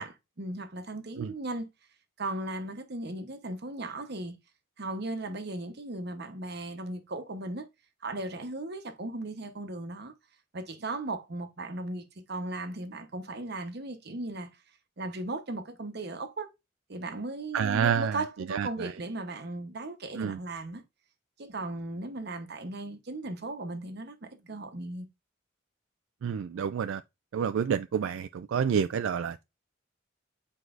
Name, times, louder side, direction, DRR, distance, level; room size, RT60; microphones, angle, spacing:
voice 1, 0.0-1.7 2.2-4.3 4.8-7.6 8.0-10.1 10.5-14.5 15.0-16.5 16.9-20.8 21.4-25.1, right 2 dB, 55° right, 1.0 m, -37 dB
voice 2, 17.5-18.2 18.5-18.9 20.1-20.4 26.2-27.0 27.3-29.4, right 7 dB, 75° right, 0.3 m, -29 dB
7.9 x 4.7 x 2.5 m
head